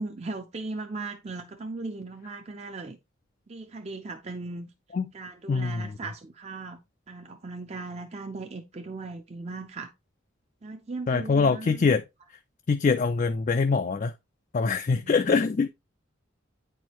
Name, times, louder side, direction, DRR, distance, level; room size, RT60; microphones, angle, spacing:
voice 1, 0.0-3.0 3.5-4.7 5.1-6.8 7.1-9.9 10.6-12.0 15.0-15.5, right 3 dB, 30° right, 0.5 m, -38 dB
voice 2, 5.5-5.9 11.1-12.0 12.7-14.1 14.5-15.7, left 4 dB, 40° left, 0.3 m, -24 dB
9.0 x 4.5 x 2.9 m
head